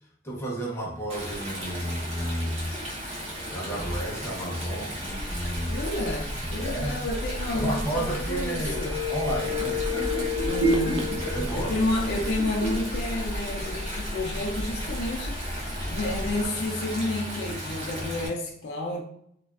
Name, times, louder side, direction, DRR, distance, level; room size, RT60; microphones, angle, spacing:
voice 1, 0.2-2.7 3.5-5.8 6.4-7.0 7.5-8.8 9.1-10.3 11.2-11.7, right 1 dB, 15° left, 0.6 m, -32 dB
Stream, 1.1-18.3, equal, 35° right, 0.6 m, -36 dB
sound 1, 5.1-16.5, equal, 60° right, 1.0 m, -35 dB
voice 2, 5.6-9.0 10.5-11.1 11.5-19.0, left 2 dB, 55° left, 0.3 m, -31 dB
sound 2, 8.4-14.1 14.5-14.6, left 1 dB, 80° right, 0.5 m, -30 dB
2.3 x 2.3 x 2.3 m
head